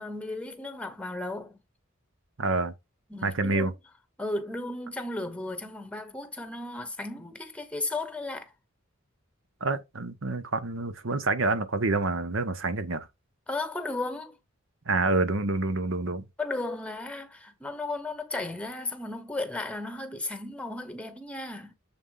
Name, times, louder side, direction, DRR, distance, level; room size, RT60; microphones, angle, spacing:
voice 1, 0.0-1.6 3.1-3.7 4.2-8.5 13.5-14.3 16.4-21.7, left 2 dB, 5° left, 1.1 m, -35 dB
voice 2, 2.4-2.7 3.2-3.7 9.6-13.1 14.9-16.2, right 3 dB, 70° right, 1.1 m, -27 dB
7.2 x 4.3 x 3.8 m
head